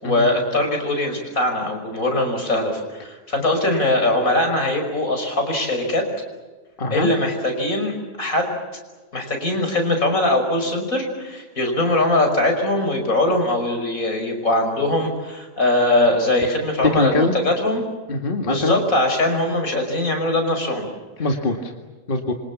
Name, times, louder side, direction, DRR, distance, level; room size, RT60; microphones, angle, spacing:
voice 1, 0.0-6.0 6.9-8.6 9.1-17.8 18.4-20.9, left 1 dB, 75° left, 4 dB, 6.1 m, -21 dB
voice 2, 6.8-7.1 16.8-17.3 18.1-18.8 21.2-21.7 22.1-22.3, left 2 dB, 40° left, 3 dB, 2.1 m, -22 dB
27.5 x 25.5 x 7.3 m, 1.3 s
omnidirectional pair, 1.5 m